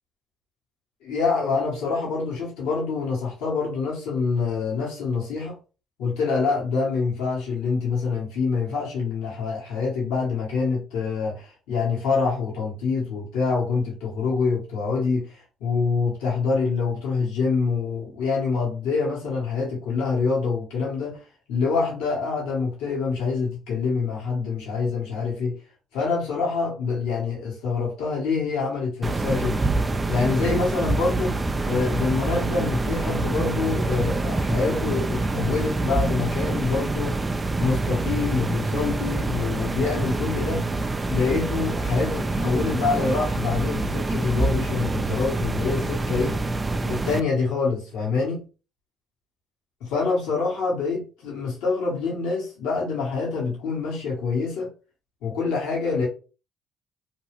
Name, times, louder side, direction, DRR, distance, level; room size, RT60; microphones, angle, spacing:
voice 1, 1.0-5.5 6.0-21.2 21.5-25.6 25.9-29.6 30.1-31.4 31.6-37.2 37.6-40.7 41.1-46.4 46.9-48.4 49.8-54.7 55.2-56.1, left 4 dB, 75° left, -4 dB, 1.3 m, -26 dB
sound 1, 29.0-47.2, right 2 dB, 25° right, 0.4 m, -26 dB
2.7 x 2.3 x 3.3 m, 0.34 s
hypercardioid pair, 55°, 0 cm